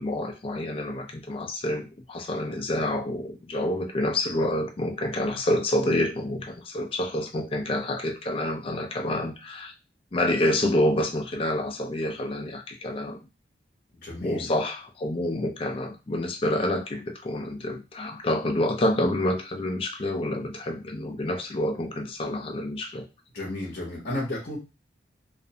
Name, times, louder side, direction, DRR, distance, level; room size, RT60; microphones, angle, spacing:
voice 1, 0.0-9.7 10.1-13.2 14.2-23.1, left 1 dB, 30° left, 3 dB, 0.4 m, -28 dB
voice 2, 14.0-14.5 23.3-24.6, left 1 dB, 55° left, -3 dB, 0.8 m, -32 dB
2.4 x 2.1 x 2.7 m, 0.28 s
head